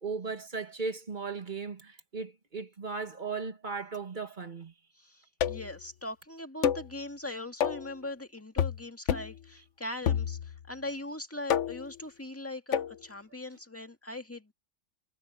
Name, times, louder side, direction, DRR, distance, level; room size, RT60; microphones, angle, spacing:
voice 1, 0.0-4.7, right 4 dB, 40° right, 1.7 m, -37 dB
voice 2, 5.0-14.5, left 1 dB, 10° left, 1.9 m, -41 dB
sound 1, 5.4-5.8 6.6-6.9 7.6-7.9 8.6-8.8 9.1-9.4 10.1-10.6 11.5-11.9 12.7-13.0, left 9 dB, 80° left, 1.1 m, -29 dB
omnidirectional pair, 1.2 m